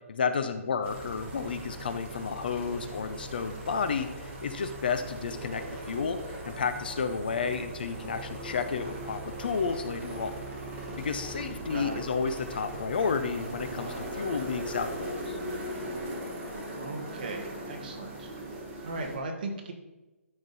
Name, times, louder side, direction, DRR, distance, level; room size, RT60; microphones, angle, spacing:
voice 1, 0.1-6.2 6.5-10.4 11.0-15.4, left 5 dB, 40° left, 10 dB, 0.6 m, -31 dB
sound 1, 0.8-19.2, right 1 dB, 15° right, 1.3 m, -39 dB
voice 2, 11.7-12.0 16.7-18.3 18.8-19.7, right 2 dB, 40° right, 2 dB, 1.5 m, -37 dB
12.5 x 5.1 x 4.1 m, 1.1 s
hypercardioid pair, 175°, 8 cm